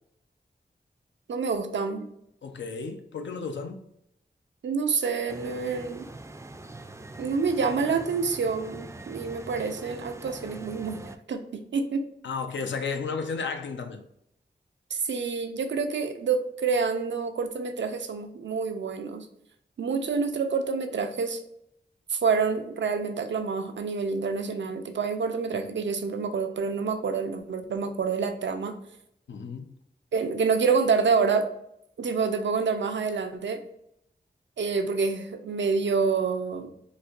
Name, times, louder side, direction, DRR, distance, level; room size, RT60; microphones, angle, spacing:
voice 1, 1.3-2.1 4.6-6.1 7.2-12.1 14.9-19.3 19.8-21.4 22.1-28.8 30.1-31.5 32.0-33.6 34.6-36.7, right 5 dB, 85° right, 0.4 m, -27 dB
voice 2, 2.4-3.8 12.2-14.0 29.3-29.7, left 5 dB, 85° left, 0.5 m, -33 dB
sound 1, 5.3-11.2, right 2 dB, 15° right, 0.3 m, -43 dB
4.1 x 2.5 x 2.4 m
cardioid pair, 45°, 19 cm